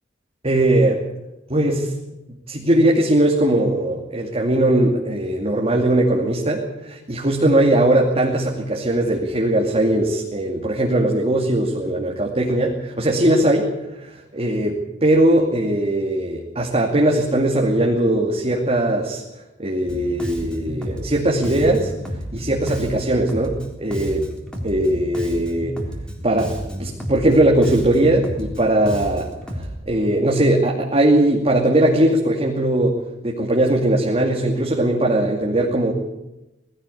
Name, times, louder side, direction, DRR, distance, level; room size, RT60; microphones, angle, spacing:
voice 1, 0.4-1.0 1.5-1.9 2.5-13.7 14.0-19.2 19.6-21.9 22.3-24.3 24.6-25.8 26.2-26.5 26.8-29.3 29.6-33.0 33.2-35.9, right 1 dB, 35° right, -1 dB, 2.5 m, -19 dB
Bass guitar, 19.9-29.8, equal, 5° left, 3.7 m, -31 dB
19.5 x 16.5 x 8.5 m, 0.96 s
head